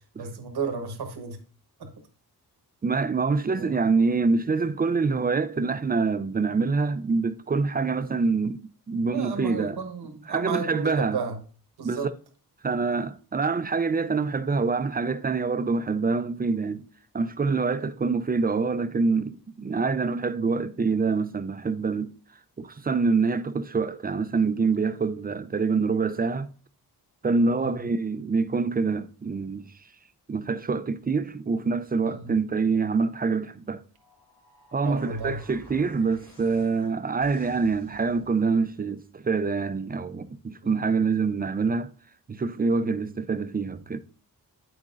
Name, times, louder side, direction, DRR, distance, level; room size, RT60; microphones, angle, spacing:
voice 1, 0.2-1.4 1.8-1.9 3.5-3.8 9.0-11.4 11.8-12.1 27.6-27.8 32.0-32.3 34.8-35.4 40.6-41.0, right 5 dB, 85° right, 1.3 m, -33 dB
voice 2, 2.8-9.8 10.3-11.2 11.8-12.1 12.6-16.9 17.1-22.1 22.6-26.5 27.2-29.7 30.3-33.8 34.7-41.9 42.3-44.0, right 4 dB, 25° right, 0.4 m, -25 dB
sound 1, 33.9-38.5, left 1 dB, 70° left, 3.3 m, -53 dB
8.6 x 6.6 x 2.5 m
wide cardioid pair, 100°, 37 cm